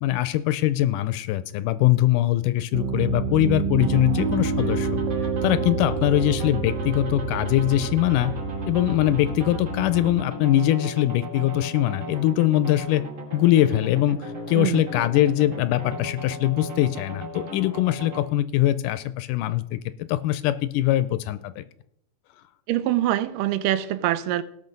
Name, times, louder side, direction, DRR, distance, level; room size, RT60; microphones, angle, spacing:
voice 1, 0.0-5.0 5.4-8.3 8.7-13.0 13.3-21.6, left 14 dB, 80° left, 2.0 m, -22 dB
Piano, 2.7-10.2, right 5 dB, 65° right, 2.0 m, -28 dB
sound 1, 3.8-18.2, right 1 dB, 35° right, 3.0 m, -37 dB
voice 2, 22.7-24.4, right 13 dB, 80° right, 2.1 m, -24 dB
18.0 x 6.1 x 5.3 m
omnidirectional pair, 4.0 m